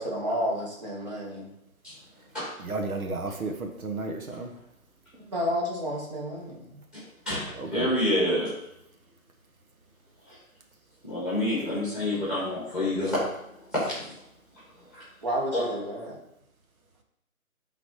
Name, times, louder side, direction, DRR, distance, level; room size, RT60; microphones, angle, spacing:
voice 1, 0.0-1.5 5.2-6.8 15.2-16.2, equal, 30° right, -2 dB, 1.5 m, -31 dB
voice 2, 2.6-4.5 7.6-7.9, right 3 dB, 75° right, 4 dB, 1.3 m, -33 dB
voice 3, 6.9-8.5 10.3-10.4 11.0-13.2 13.5-14.2 14.9-15.0 15.5-15.7, left 1 dB, ahead, -9 dB, 1.7 m, -28 dB
11.5 x 4.0 x 3.2 m, 0.79 s
hypercardioid pair, 170°, 43 cm